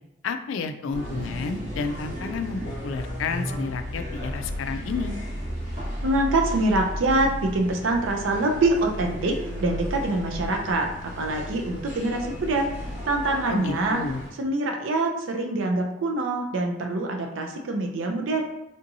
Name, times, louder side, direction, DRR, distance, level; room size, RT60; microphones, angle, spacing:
voice 1, 0.2-5.2 13.5-14.2, left 4 dB, 85° left, 8 dB, 0.3 m, -31 dB
sound 1, 0.9-14.3, equal, 40° right, 1.2 m, -34 dB
voice 2, 6.0-14.0 14.4-18.4, right 2 dB, 85° right, 2 dB, 0.5 m, -25 dB
3.6 x 2.7 x 2.6 m, 0.95 s
head